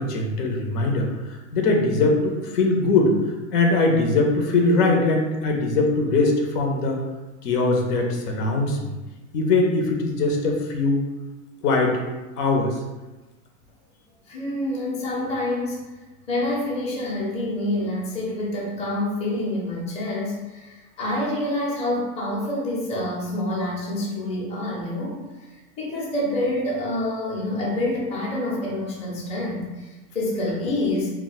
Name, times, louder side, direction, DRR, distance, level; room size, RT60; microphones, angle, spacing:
voice 1, 0.0-3.1 3.5-7.0 7.4-8.9 9.3-11.0 11.6-12.0 12.4-12.8, left 3 dB, 90° left, 2 dB, 0.8 m, -21 dB
voice 2, 14.3-15.9 16.3-25.2 25.8-29.9 30.1-31.1, left 1 dB, 15° left, -4 dB, 0.5 m, -27 dB
2.3 x 2.2 x 3.9 m, 1.1 s
supercardioid pair, 130°, 46 cm